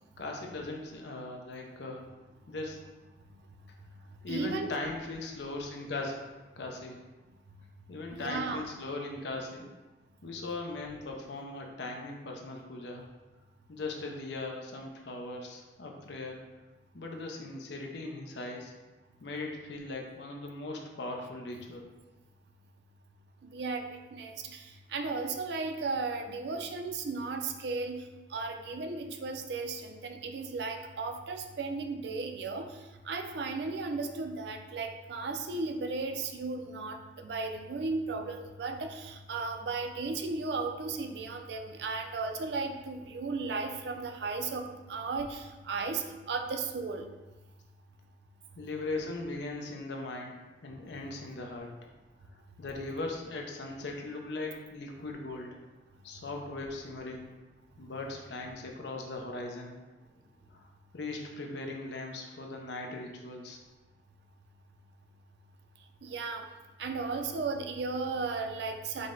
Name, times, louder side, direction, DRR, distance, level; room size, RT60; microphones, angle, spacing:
voice 1, 0.2-2.1 2.5-2.9 4.2-7.0 7.9-9.7 10.2-13.0 13.7-16.4 16.9-18.7 19.2-21.9 48.6-50.4 50.6-51.7 52.6-55.6 56.0-57.3 57.8-59.8 60.5-60.7 60.9-63.6, left 2 dB, 65° left, 1 dB, 0.6 m, -39 dB
voice 2, 4.3-4.7 8.1-8.6 23.4-28.0 28.3-32.7 33.0-47.1 66.0-66.4 66.8-69.1, right 4 dB, 60° right, 5 dB, 0.4 m, -35 dB
5.1 x 2.1 x 3.7 m, 1.2 s
head